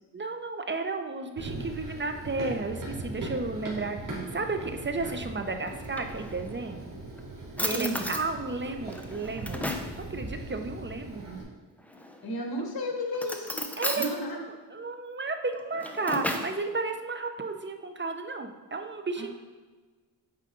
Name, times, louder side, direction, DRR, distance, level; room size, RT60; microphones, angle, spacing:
voice 1, 0.1-6.9 7.6-11.5 13.8-14.1 14.7-19.3, right 3 dB, 25° right, 6 dB, 0.7 m, -33 dB
Run, 1.4-11.4, right 2 dB, 50° right, 2.4 m, -40 dB
Drawer open or close, 5.7-6.6 7.2-7.3 7.6-8.3 8.9-10.0 11.8-12.4 13.1-14.1 15.5-16.6, left 1 dB, 5° left, 0.7 m, -34 dB
voice 2, 7.7-8.1 12.2-13.6 14.0-14.4 19.2-19.3, equal, 60° left, 0 dB, 1.8 m, -33 dB
8.6 x 4.9 x 3.8 m, 1.3 s
cardioid pair, 80°, 42 cm